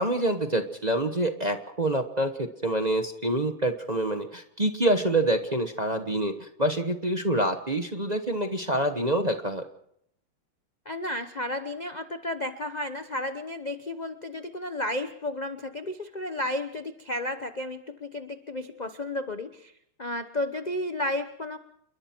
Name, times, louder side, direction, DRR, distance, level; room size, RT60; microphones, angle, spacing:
voice 1, 0.0-9.6, right 1 dB, 25° right, 6 dB, 1.0 m, -26 dB
voice 2, 10.9-19.7 20.0-21.6, left 1 dB, 35° left, 8 dB, 0.6 m, -32 dB
29.5 x 22.0 x 4.6 m, 0.71 s
omnidirectional pair, 2.3 m